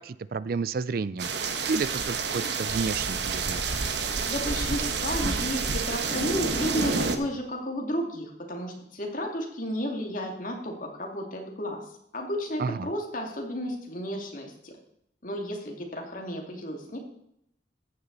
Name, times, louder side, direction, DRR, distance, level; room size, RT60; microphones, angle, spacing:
voice 1, 0.0-3.6 12.6-12.9, right 4 dB, 55° right, 17 dB, 0.4 m, -31 dB
sound 1, 1.2-7.2, right 4 dB, 70° right, 1.2 m, -29 dB
voice 2, 4.2-11.8 12.1-14.8 15.2-17.0, equal, 45° left, 1 dB, 2.5 m, -33 dB
14.0 x 9.8 x 4.1 m, 0.76 s
head